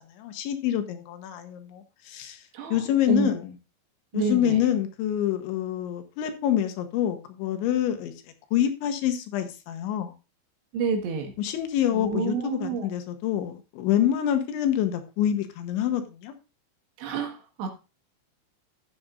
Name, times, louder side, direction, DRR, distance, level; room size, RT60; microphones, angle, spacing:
voice 1, 0.2-2.4 2.7-3.5 4.1-8.1 8.5-10.1 11.4-16.3, left 10 dB, 80° left, 7 dB, 3.3 m, -26 dB
voice 2, 2.5-3.4 4.1-4.6 10.7-11.3 11.9-12.9 17.0-17.7, right 5 dB, 70° right, 4 dB, 3.4 m, -29 dB
13.0 x 8.6 x 2.5 m, 0.29 s
omnidirectional pair, 5.5 m